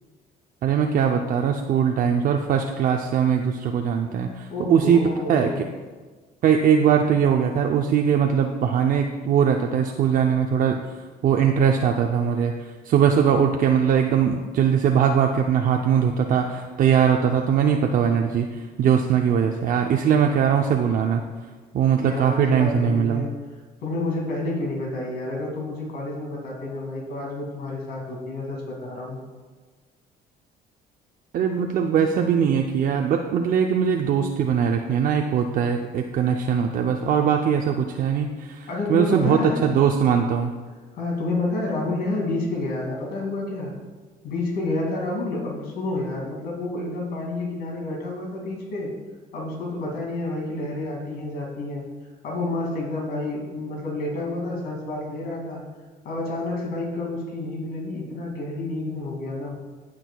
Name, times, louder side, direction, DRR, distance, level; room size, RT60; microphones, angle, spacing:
voice 1, 0.6-5.5 6.4-11.0 11.2-21.2 21.7-23.2 31.3-40.5, right 7 dB, 55° right, 3 dB, 0.5 m, -21 dB
voice 2, 4.5-5.6 22.0-23.3 23.8-29.2 38.7-39.7 40.9-43.7 44.2-48.9 49.3-51.9 52.2-55.6 56.0-59.6, left 2 dB, 70° left, -2 dB, 2.3 m, -29 dB
15.0 x 6.3 x 2.3 m, 1.4 s
cardioid pair, 110°, 17 cm